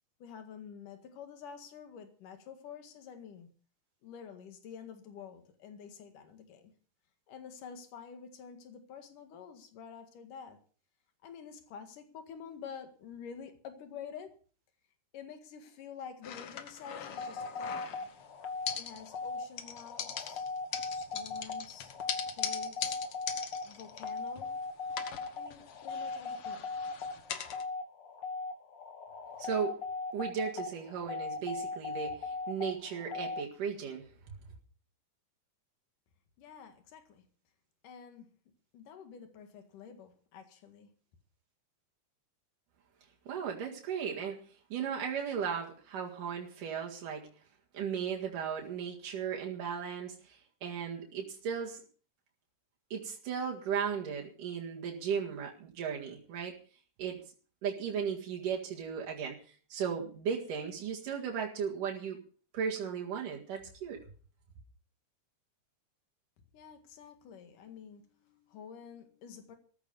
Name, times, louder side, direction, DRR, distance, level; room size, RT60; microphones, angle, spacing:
voice 1, 0.2-3.5 4.0-6.7 7.3-10.6 11.2-14.3 15.1-18.1 18.8-20.5 20.9-21.9 22.3-23.0 23.6-24.5 25.4-26.7 36.4-37.2 37.8-38.3 38.7-40.9 66.5-69.6, left 7 dB, 80° left, 3.5 m, -49 dB
sound 1, 16.2-18.3 18.7-19.3 19.6-24.6 24.9-27.6, left 8 dB, 60° left, 1.7 m, -41 dB
sound 2, 17.1-33.4, left 4 dB, 45° left, 1.8 m, -39 dB
voice 2, 29.4-29.8 30.1-34.1 43.3-44.4 44.7-47.3 47.7-51.8 52.9-56.6 57.0-57.2 57.6-59.4 59.7-62.2 62.5-64.0, right 7 dB, 80° right, 3.6 m, -36 dB
14.5 x 13.5 x 5.3 m
omnidirectional pair, 3.7 m